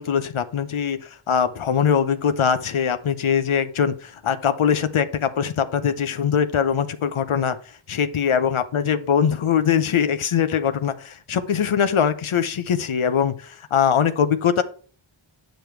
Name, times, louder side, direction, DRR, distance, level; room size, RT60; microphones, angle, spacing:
voice 1, 0.0-7.6 7.9-14.6, left 7 dB, 85° left, 11 dB, 0.8 m, -22 dB
9.1 x 5.1 x 4.5 m, 0.43 s
wide cardioid pair, 50°, 48 cm